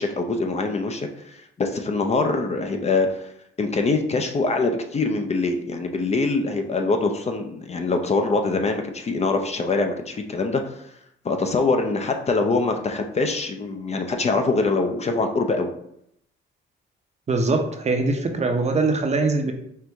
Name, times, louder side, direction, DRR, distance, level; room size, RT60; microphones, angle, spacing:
voice 1, 0.0-3.3 3.6-10.8 11.2-15.7, left 3 dB, 35° left, 5 dB, 0.5 m, -24 dB
voice 2, 17.3-19.5, right 3 dB, 35° right, 4 dB, 0.7 m, -22 dB
4.5 x 2.5 x 3.4 m, 0.73 s
cardioid pair, 90°, 20 cm